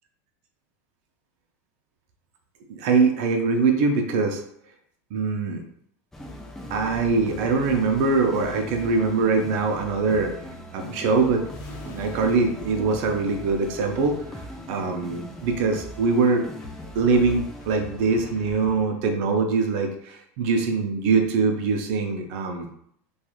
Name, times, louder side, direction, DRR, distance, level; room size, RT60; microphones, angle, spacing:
voice 1, 2.7-4.4 5.1-5.6 6.7-10.3 10.7-11.5 11.8-16.4 16.9-22.7, right 4 dB, 60° right, 4 dB, 0.5 m, -23 dB
sound 1, 6.1-18.5, left 1 dB, 5° left, 0.3 m, -40 dB
sound 2, 11.4-14.0, left 1 dB, 50° left, 0.7 m, -45 dB
sound 3, 16.6-19.3, left 4 dB, 85° left, 0.7 m, -47 dB
2.9 x 2.3 x 2.3 m, 0.67 s
supercardioid pair, 140°, 8 cm